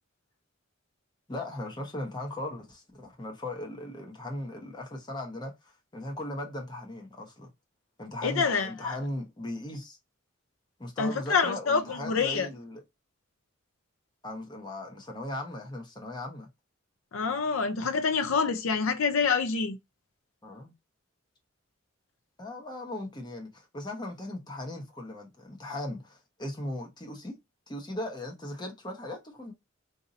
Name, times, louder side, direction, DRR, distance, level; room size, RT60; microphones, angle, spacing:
voice 1, 1.3-7.5 8.0-10.0 10.8-12.8 14.2-16.5 20.4-20.7 22.4-27.4 27.7-29.5, left 1 dB, 20° left, 0.9 m, -38 dB
voice 2, 8.2-8.9 11.0-12.5 17.1-19.8, left 5 dB, 80° left, 0.5 m, -27 dB
2.7 x 2.6 x 4.0 m
head